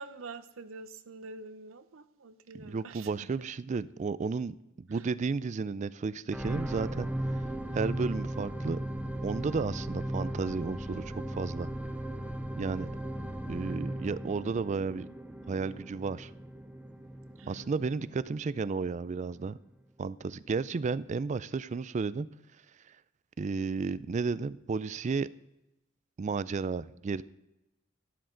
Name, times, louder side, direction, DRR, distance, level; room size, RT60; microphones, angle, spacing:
voice 1, 0.0-3.1 4.9-5.1 17.4-17.7, right 3 dB, 90° right, 13 dB, 0.8 m, -46 dB
voice 2, 2.5-7.4 7.7-8.8 9.2-11.7 12.6-12.9 13.5-15.1 15.5-16.3 17.5-19.6 20.0-22.3 22.9-23.0 23.4-25.3 26.2-27.2, right 4 dB, 35° right, 18 dB, 0.3 m, -33 dB
sound 1, 6.3-18.7 19.3-19.4, right 1 dB, 5° right, 0.8 m, -37 dB
12.5 x 12.0 x 3.9 m, 0.90 s
head